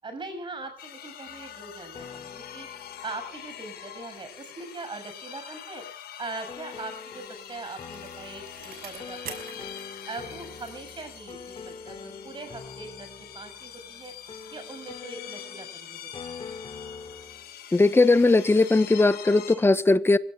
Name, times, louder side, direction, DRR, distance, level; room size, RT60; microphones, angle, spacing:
voice 1, 0.0-2.7 3.0-5.8 6.2-9.7 10.1-13.1 13.3-14.1 14.5-16.4, right 3 dB, 30° right, 8 dB, 7.0 m, -41 dB
sound 1, 0.8-19.5, left 10 dB, 65° left, 6.1 m, -44 dB
sound 2, 1.3-4.2 6.5-17.5, left 5 dB, 30° left, 3.4 m, -45 dB
Bicycle, 6.9-11.8 12.2-12.3, right 8 dB, 60° right, 5.9 m, -47 dB
voice 2, 17.7-20.2, left 3 dB, 15° left, 14 dB, 1.2 m, -19 dB
29.5 x 17.0 x 2.5 m, 0.37 s
cardioid pair, 110°, 17 cm